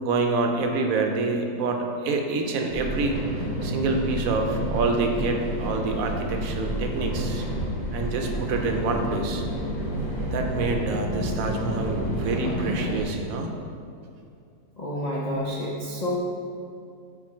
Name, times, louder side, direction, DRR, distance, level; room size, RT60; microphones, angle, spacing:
voice 1, 0.0-3.2 3.6-7.4 7.9-9.4 10.3-13.5, right 3 dB, 65° right, 3 dB, 0.9 m, -27 dB
sound 1, 2.7-13.0, equal, 45° left, 1.6 m, -29 dB
voice 2, 14.8-16.2, left 1 dB, 75° left, -5 dB, 0.3 m, -29 dB
6.3 x 4.4 x 4.3 m, 2.4 s
omnidirectional pair, 1.8 m